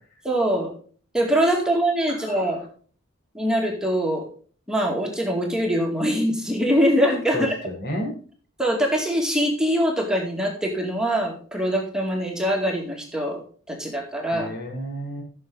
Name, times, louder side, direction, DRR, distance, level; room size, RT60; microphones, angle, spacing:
voice 1, 0.2-0.7 1.1-2.6 3.3-4.3 4.7-7.5 8.6-13.4 13.7-14.5, equal, 5° right, -1 dB, 2.3 m, -23 dB
voice 2, 2.1-2.6 7.3-8.1 14.3-15.2, equal, 55° left, 1 dB, 3.8 m, -31 dB
16.0 x 6.7 x 3.9 m, 0.42 s
head